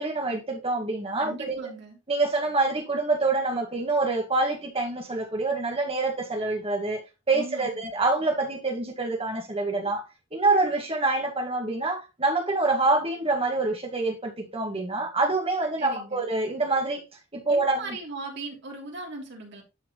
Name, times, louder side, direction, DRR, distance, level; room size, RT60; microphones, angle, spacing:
voice 1, 0.0-1.7 2.1-7.0 7.3-10.0 10.3-17.0 17.3-18.0, right 3 dB, 30° right, 2.0 m, -26 dB
voice 2, 1.2-2.0 7.3-7.9 15.8-16.3 17.5-19.6, right 3 dB, 55° right, 3.2 m, -39 dB
11.5 x 4.7 x 3.2 m
head